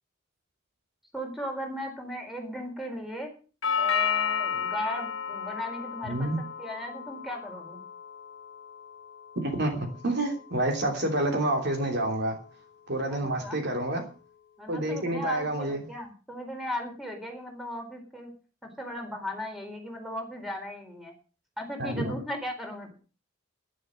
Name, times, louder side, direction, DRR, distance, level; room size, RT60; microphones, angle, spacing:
voice 1, 1.1-3.3 3.8-6.3 6.6-7.8 13.1-13.6 14.6-18.3 18.6-21.1 21.6-22.9, equal, ahead, 2 dB, 4.3 m, -37 dB
Doorbell, 3.6-11.7, left 6 dB, 70° left, 1.7 m, -33 dB
voice 2, 6.0-6.4 9.4-12.4 12.9-14.0 14.7-15.9 21.8-22.2, right 1 dB, 55° right, 3 dB, 3.1 m, -28 dB
11.5 x 11.0 x 6.4 m, 0.37 s
head